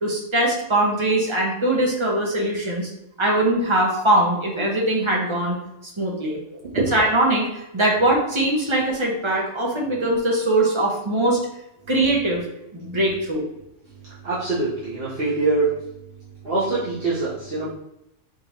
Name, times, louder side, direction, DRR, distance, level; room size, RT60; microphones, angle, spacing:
voice 1, 0.0-2.9 3.2-5.6 6.0-6.4 6.9-11.4 11.9-12.5 12.7-13.4, right 1 dB, 25° right, -2 dB, 0.9 m, -21 dB
voice 2, 6.6-6.9 14.2-15.8 16.4-17.7, right 3 dB, 50° right, -9 dB, 1.2 m, -24 dB
4.8 x 3.6 x 3.0 m, 0.84 s
omnidirectional pair, 1.4 m